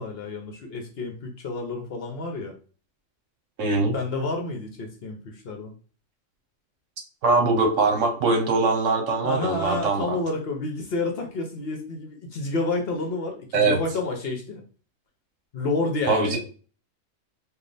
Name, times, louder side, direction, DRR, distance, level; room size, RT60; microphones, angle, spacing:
voice 1, 0.0-2.5 3.9-5.7 9.2-14.6 15.5-16.4, left 3 dB, 55° left, 2 dB, 0.8 m, -29 dB
voice 2, 3.6-3.9 7.2-10.2 13.5-13.8 16.1-16.4, right 3 dB, 70° right, 2 dB, 1.1 m, -22 dB
3.2 x 2.4 x 3.9 m, 0.39 s
omnidirectional pair, 1.4 m